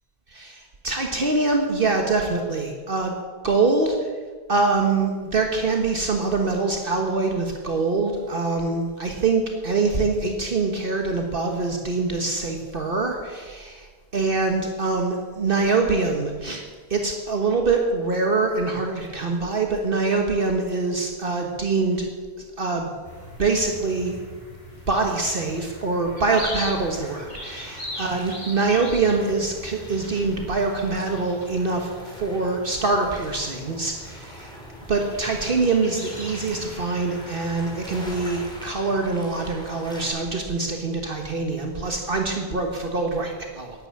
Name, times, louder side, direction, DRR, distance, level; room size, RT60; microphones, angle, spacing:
voice 1, 0.3-3.1 3.4-4.1 4.5-13.9 14.1-16.6 16.9-22.0 22.6-22.9 23.4-24.2 24.9-34.5 34.9-43.7, right 3 dB, 55° right, 3 dB, 1.6 m, -24 dB
sound 1, 23.0-38.6, left 1 dB, 45° left, 3.9 m, -41 dB
sound 2, 26.8-40.1, equal, 5° left, 3.3 m, -44 dB
11.5 x 11.0 x 8.6 m, 1.5 s
omnidirectional pair, 1.1 m